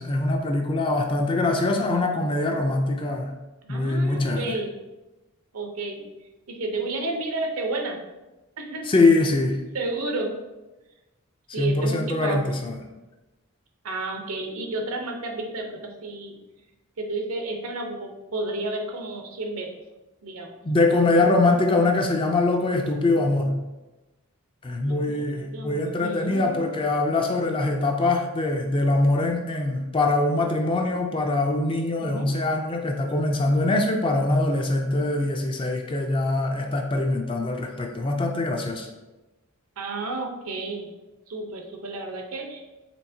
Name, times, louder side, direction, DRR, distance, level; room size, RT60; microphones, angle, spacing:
voice 1, 0.0-3.3 3.7-4.5 8.9-9.6 11.6-12.8 20.6-23.5 24.6-38.9, left 2 dB, 25° left, 3 dB, 0.4 m, -23 dB
voice 2, 3.6-4.7 5.5-6.1 6.5-8.0 8.6-8.9 9.7-10.4 11.5-12.6 13.8-16.4 17.0-19.7 20.2-20.6 24.8-25.3 25.5-26.7 32.0-32.3 39.8-40.9 41.3-42.6, right 2 dB, 75° right, 3 dB, 0.7 m, -31 dB
4.5 x 3.6 x 2.7 m, 1.1 s
head